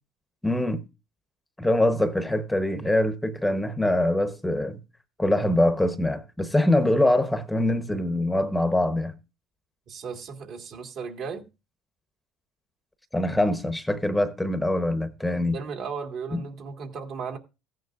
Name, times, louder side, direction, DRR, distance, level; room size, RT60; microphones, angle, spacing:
voice 1, 0.4-0.8 1.6-4.8 5.2-9.1 13.1-15.6 16.3-16.4, left 1 dB, 5° left, 0.9 m, -24 dB
voice 2, 9.9-11.4 15.5-17.4, right 5 dB, 55° right, 1.9 m, -35 dB
15.0 x 9.4 x 2.5 m
cardioid pair, 120°, 0 cm